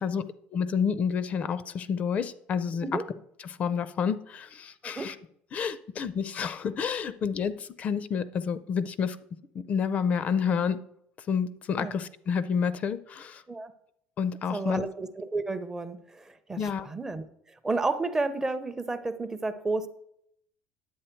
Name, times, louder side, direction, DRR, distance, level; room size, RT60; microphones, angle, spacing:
voice 1, 0.5-2.9 3.4-5.2 5.5-9.2 9.5-10.8 11.3-13.4 14.2-14.8 16.6-16.9, left 6 dB, 35° left, 0.5 m, -29 dB
voice 2, 4.8-5.1 11.8-11.9 13.5-13.7 14.5-19.9, right 3 dB, 15° right, 0.6 m, -32 dB
10.0 x 8.2 x 4.5 m
cardioid pair, 155°, 4 cm